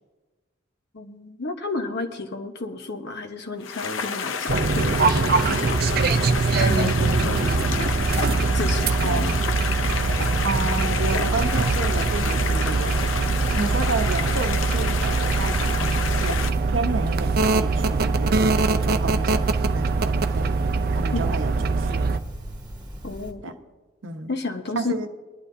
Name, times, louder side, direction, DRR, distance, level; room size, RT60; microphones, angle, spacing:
voice 1, 0.9-5.8 6.6-8.0 8.5-9.4 21.1-21.2 23.0-23.4 24.3-24.9, left 3 dB, 60° left, 1.1 m, -31 dB
sound 1, 3.6-16.5, left 6 dB, 90° left, 0.6 m, -30 dB
sound 2, 4.5-22.2, right 4 dB, 50° right, 0.5 m, -23 dB
voice 2, 6.7-7.2 9.0-9.5 10.4-13.0 13.5-20.5 20.9-22.0 23.4-23.5 24.0-24.3 24.8-25.1, right 3 dB, 85° right, 0.9 m, -31 dB
sound 3, 9.5-23.3, equal, 20° right, 1.4 m, -38 dB
22.5 x 11.0 x 2.7 m
head